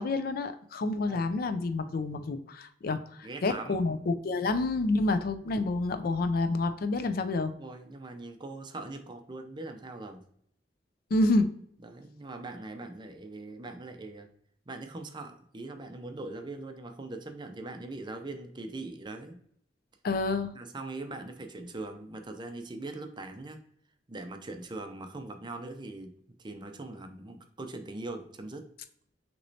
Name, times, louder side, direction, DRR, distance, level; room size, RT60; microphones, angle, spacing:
voice 1, 0.0-7.5 11.1-11.5 20.0-20.5, left 2 dB, 55° left, 10 dB, 0.4 m, -28 dB
voice 2, 0.9-1.4 3.2-3.8 5.1-5.2 7.6-10.2 11.8-14.3 14.7-19.4 20.5-23.6 24.1-26.1 26.4-28.7, right 2 dB, 25° right, 6 dB, 0.5 m, -41 dB
6.2 x 3.0 x 2.7 m, 0.66 s
head